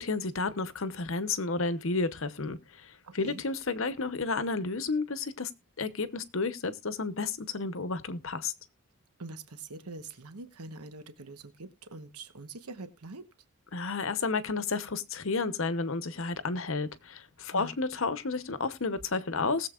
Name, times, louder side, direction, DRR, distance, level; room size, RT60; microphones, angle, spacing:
voice 1, 0.0-5.5 5.8-8.5 13.7-19.7, left 3 dB, 60° left, 0.9 m, -31 dB
voice 2, 3.0-3.4 9.2-13.3 17.5-17.7, right 3 dB, 85° right, 1.1 m, -44 dB
20.0 x 7.5 x 2.4 m
head